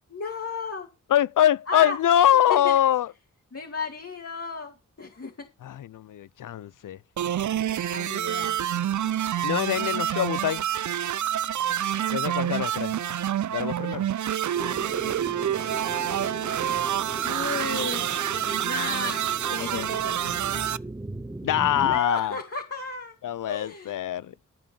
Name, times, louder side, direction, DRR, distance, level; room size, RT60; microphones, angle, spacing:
voice 1, 0.1-0.9 1.7-2.0 2.5-2.7 3.5-5.3 7.9-8.6 14.2-14.8 15.5-16.5 17.2-19.2 19.5-20.4 21.8-23.1 23.5-24.0, left 4 dB, 45° left, 2.5 m, -34 dB
voice 2, 1.1-3.1 5.6-7.0 9.4-10.7 12.1-12.9 13.5-14.1 19.6-19.9 21.4-22.4 23.2-24.3, left 11 dB, 70° left, 0.5 m, -24 dB
sound 1, 7.2-20.8, right 10 dB, 65° right, 0.5 m, -27 dB
sound 2, 14.5-22.0, right 1 dB, 10° right, 0.8 m, -38 dB
13.0 x 5.2 x 6.9 m
cardioid pair, 50°, 32 cm